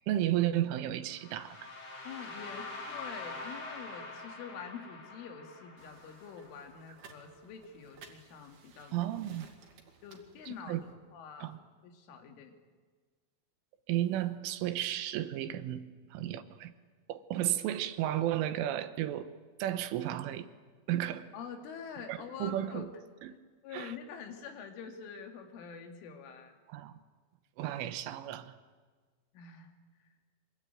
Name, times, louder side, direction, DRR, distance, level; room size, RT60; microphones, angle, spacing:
voice 1, 0.1-1.7 8.9-9.5 10.5-10.8 11.4-11.6 13.9-16.7 17.1-19.3 19.6-20.5 20.9-21.3 22.1-22.9 23.2-23.3 23.7-23.9 26.7-26.9 27.6-28.5, right 12 dB, 85° right, 11 dB, 3.7 m, -33 dB
sound 1, 1.1-7.1, left 3 dB, 35° left, 5.0 m, -45 dB
voice 2, 2.0-8.9 10.0-10.9 11.1-11.5 11.8-12.6 21.3-22.9 23.6-26.6 29.3-29.7, left 6 dB, 80° left, 4 dB, 4.9 m, -46 dB
sound 2, 5.8-10.9, right 6 dB, 60° right, 4.0 m, -58 dB
24.5 x 23.5 x 9.4 m, 1.5 s
omnidirectional pair, 5.5 m